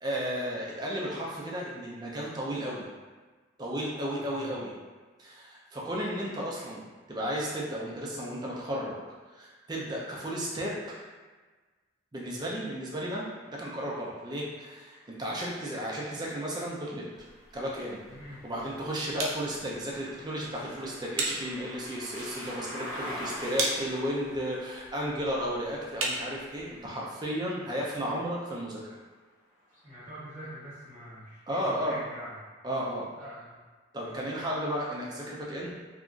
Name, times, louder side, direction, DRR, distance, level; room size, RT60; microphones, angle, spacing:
voice 1, 0.0-2.9 3.6-4.7 5.2-6.8 7.1-9.0 9.3-11.0 12.1-17.1 17.5-18.0 18.4-28.8 31.5-32.0 32.6-33.1 33.9-35.7, equal, 20° right, -4 dB, 0.4 m, -34 dB
voice 2, 4.1-4.5 18.1-18.4 29.8-32.4 33.2-33.6 34.0-34.2, equal, 35° right, -11 dB, 1.0 m, -45 dB
sound 1, 13.1-29.0 29.6-30.8, equal, 10° left, 0.8 m, -47 dB
sound 2, 17.1-26.9, right 2 dB, 90° right, 0.5 m, -39 dB
2.8 x 2.3 x 2.4 m, 1.4 s
head